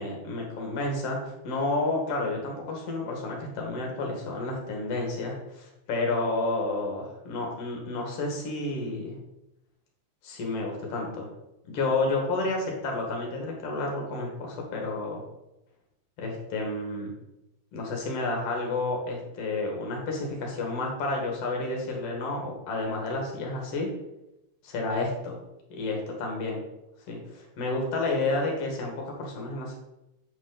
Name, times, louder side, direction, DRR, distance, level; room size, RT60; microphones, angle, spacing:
voice 1, 0.0-9.2 10.2-11.3 11.7-15.2 16.2-17.1 17.7-23.9 24.6-25.4 25.7-26.6 27.1-29.8, left 2 dB, 50° left, 0 dB, 2.3 m, -30 dB
8.2 x 6.2 x 3.9 m, 0.91 s
omnidirectional pair, 4.2 m